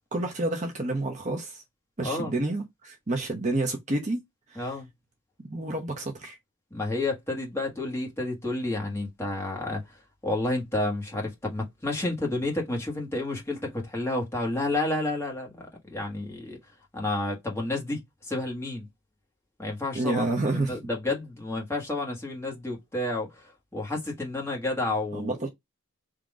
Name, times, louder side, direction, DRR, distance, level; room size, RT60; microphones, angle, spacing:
voice 1, 0.1-1.6 2.0-4.2 4.5-4.7 5.5-6.4 19.9-20.8 25.1-25.5, right 2 dB, 30° right, 0.8 m, -29 dB
voice 2, 2.0-2.3 4.5-4.9 6.7-9.8 10.2-16.6 16.9-18.9 19.6-25.3, left 2 dB, 10° left, 1.5 m, -30 dB
3.7 x 2.9 x 4.8 m
head